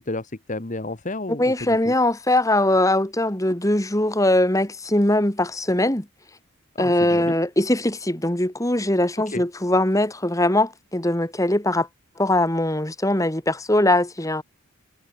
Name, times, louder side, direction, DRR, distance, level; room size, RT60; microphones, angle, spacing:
voice 1, 0.0-1.9 6.7-7.4 9.3-9.4, left 2 dB, 35° left, 1.2 m, -31 dB
voice 2, 1.4-6.1 6.8-11.9 12.2-14.4, left 1 dB, 15° left, 1.8 m, -21 dB
head